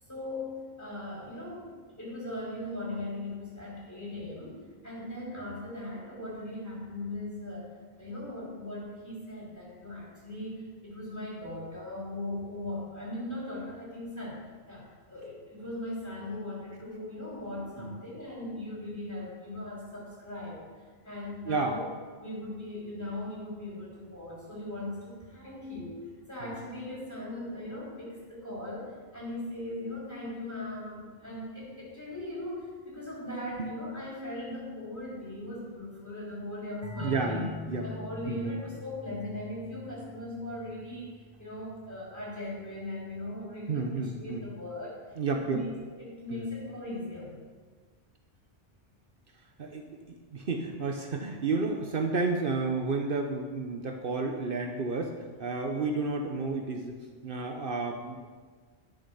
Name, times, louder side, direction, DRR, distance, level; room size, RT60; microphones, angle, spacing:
voice 1, 0.1-7.7 8.0-20.7 21.0-21.8 22.2-26.0 26.3-37.5 37.8-45.0 45.3-45.6 45.9-47.3, left 1 dB, 15° left, -6 dB, 3.5 m, -39 dB
sound 1, 36.8-42.3, left 2 dB, 15° right, 0.9 m, -43 dB
voice 2, 37.0-37.9 38.3-38.4 43.7-44.4 45.2-45.6 46.3-46.5 49.6-50.0 50.3-57.0 57.2-58.4, right 3 dB, 60° right, 3 dB, 1.0 m, -31 dB
11.0 x 6.8 x 5.5 m, 1.5 s
omnidirectional pair, 1.1 m